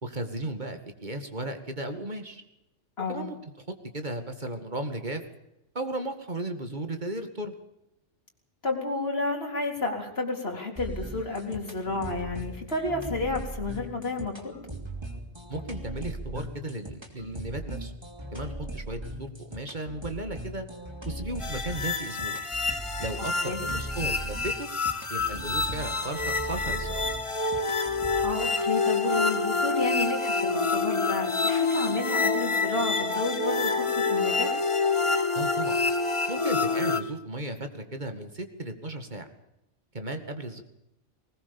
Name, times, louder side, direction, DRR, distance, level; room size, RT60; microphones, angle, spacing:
voice 1, 0.0-2.4 3.1-3.7 3.9-5.2 5.7-7.5 15.5-17.9 18.3-20.7 21.1-22.4 23.0-24.7 25.1-27.0 35.4-35.8 36.3-39.3 39.9-40.6, right 1 dB, 40° right, 7 dB, 2.3 m, -35 dB
voice 2, 3.0-3.3 8.6-14.6 23.4-23.6 27.9-34.6, left 3 dB, 55° left, 1 dB, 4.1 m, -31 dB
sound 1, 10.8-28.3, right 1 dB, 20° right, 3.1 m, -39 dB
sound 2, 21.4-37.0, left 4 dB, 25° left, 1.6 m, -27 dB
20.0 x 19.5 x 7.1 m, 0.89 s
omnidirectional pair, 1.2 m